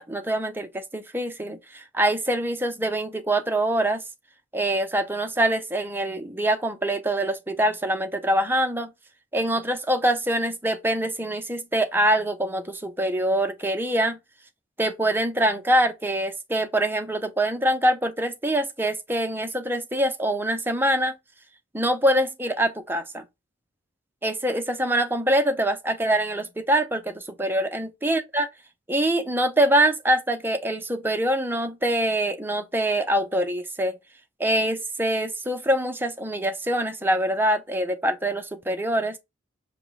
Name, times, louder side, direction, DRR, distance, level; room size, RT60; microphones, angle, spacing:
voice 1, 0.0-4.0 4.5-8.9 9.3-14.2 14.8-21.2 21.7-23.2 24.2-28.5 28.9-34.0 34.4-39.2, right 1 dB, 10° right, 0.7 m, -24 dB
5.2 x 2.3 x 4.1 m
head